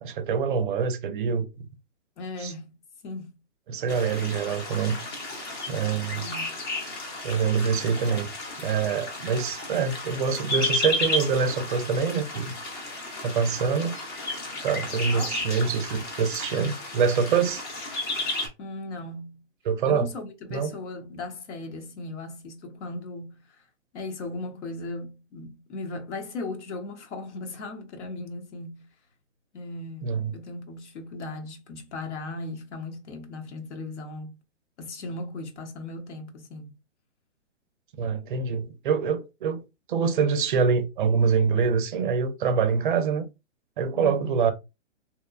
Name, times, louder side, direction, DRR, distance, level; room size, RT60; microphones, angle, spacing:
voice 1, 0.0-1.5 2.4-2.5 3.7-5.0 5.7-6.2 7.2-8.3 8.6-12.5 13.2-14.0 14.6-17.6 19.7-20.1 20.5-20.7 30.0-30.3 38.0-43.3 43.8-44.5, right 6 dB, 45° right, 0.5 m, -25 dB
voice 2, 2.2-2.8 3.0-3.4 6.2-6.6 15.1-15.4 18.6-19.5 19.8-23.4 23.9-28.9 29.5-34.3 34.8-36.7 43.9-44.4, left 2 dB, 70° left, 1.0 m, -37 dB
sound 1, 3.9-18.5, left 2 dB, 20° left, 0.5 m, -33 dB
2.9 x 2.1 x 2.3 m
hypercardioid pair, 140°, 37 cm